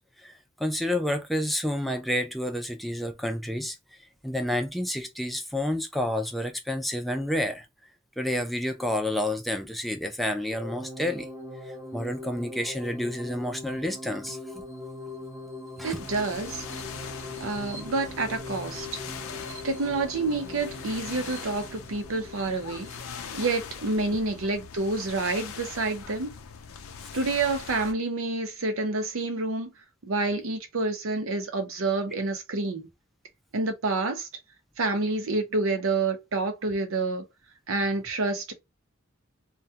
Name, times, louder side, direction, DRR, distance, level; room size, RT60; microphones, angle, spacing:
voice 1, 0.2-3.8 4.2-7.7 8.2-11.3 11.9-14.4 15.8-16.0, left 1 dB, ahead, 0.3 m, -29 dB
sound 1, 10.5-23.0, left 1 dB, 15° right, 0.8 m, -41 dB
sound 2, 15.8-27.9, left 6 dB, 70° left, 0.5 m, -41 dB
voice 2, 15.8-16.6 17.4-19.0 19.6-22.9 23.3-26.3 27.1-29.7 30.0-32.9 33.5-34.3 34.8-37.2 37.7-38.5, right 3 dB, 70° right, 0.6 m, -28 dB
2.2 x 2.2 x 2.7 m
head